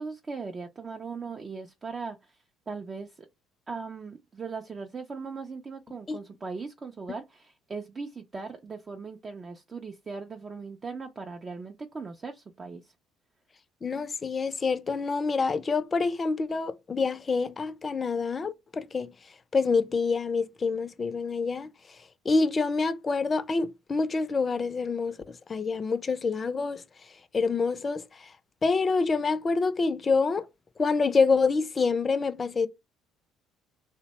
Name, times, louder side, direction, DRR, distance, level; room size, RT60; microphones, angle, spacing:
voice 1, 0.0-2.4 2.7-3.3 3.7-12.9, right 4 dB, 35° right, 0.4 m, -39 dB
voice 2, 13.8-19.1 19.5-21.7 22.3-26.8 27.3-28.0 28.6-30.5 30.8-32.7, left 4 dB, 35° left, 0.4 m, -26 dB
2.6 x 2.1 x 2.9 m
hypercardioid pair, 65°, 0 cm